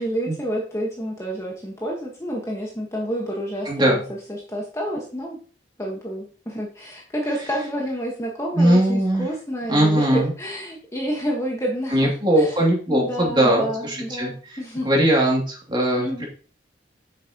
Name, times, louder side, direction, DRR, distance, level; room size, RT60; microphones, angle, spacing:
voice 1, 0.0-5.4 5.8-12.6 12.9-14.9 16.0-16.2, equal, 15° left, -2 dB, 1.5 m, -29 dB
voice 2, 3.6-4.0 8.5-9.3 9.7-10.3 11.9-14.3 14.8-16.2, right 1 dB, 25° right, -2 dB, 2.8 m, -20 dB
9.0 x 6.7 x 3.0 m, 0.40 s
head